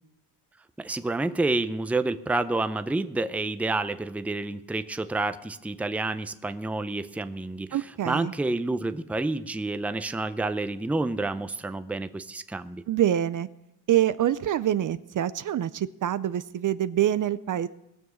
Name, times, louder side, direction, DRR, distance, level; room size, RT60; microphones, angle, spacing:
voice 1, 0.8-7.8 8.1-12.8, right 2 dB, 5° right, 11 dB, 0.5 m, -29 dB
voice 2, 7.7-8.3 12.9-13.5 13.9-17.7, right 11 dB, 50° right, 15 dB, 0.5 m, -25 dB
20.5 x 7.1 x 6.3 m, 0.86 s
cardioid pair, 105°, 41 cm